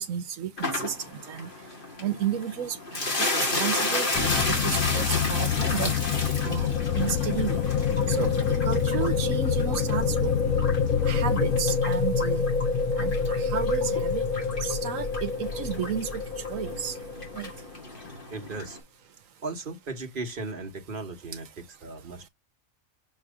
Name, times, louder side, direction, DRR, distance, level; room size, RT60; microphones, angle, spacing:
voice 1, 0.0-1.5 2.0-5.9 6.4-7.6 8.1-10.3 11.0-12.4 13.0-14.2 14.6-16.2 16.5-16.9 17.3-17.5, right 8 dB, 75° right, 1.2 m, -32 dB
sound 1, 0.6-18.8, left 2 dB, 40° left, 2.2 m, -33 dB
sound 2, 4.1-11.6, left 10 dB, 85° left, 1.0 m, -28 dB
sound 3, 5.6-17.8, left 4 dB, 60° left, 0.5 m, -28 dB
voice 2, 18.3-18.8 19.4-22.3, right 3 dB, 40° right, 1.3 m, -36 dB
6.6 x 3.1 x 4.9 m
omnidirectional pair, 1.4 m